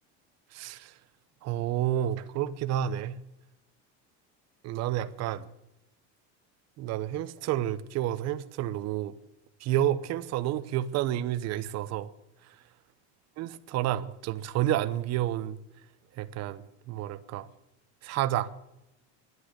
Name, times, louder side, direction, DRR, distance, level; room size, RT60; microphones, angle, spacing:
voice 1, 0.5-0.9 1.4-3.1 4.6-5.5 6.8-9.1 9.6-12.1 13.4-15.6 16.2-17.5 18.0-18.5, right 12 dB, 45° right, 1.0 m, -30 dB
11.0 x 10.5 x 9.8 m
cardioid pair, 155°, 35 cm